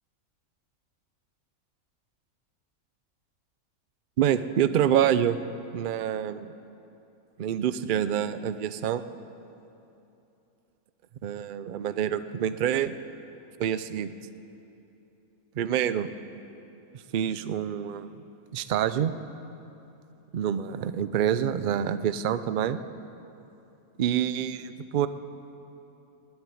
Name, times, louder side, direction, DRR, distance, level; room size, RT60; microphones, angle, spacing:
voice 1, 4.2-5.4 5.7-6.5 7.4-9.0 11.2-12.9 13.6-14.1 15.5-16.1 17.1-18.1 18.5-19.2 20.3-22.8 24.0-25.1, right 9 dB, 75° right, 13 dB, 0.4 m, -26 dB
18.0 x 8.0 x 9.9 m, 2.9 s
omnidirectional pair, 1.5 m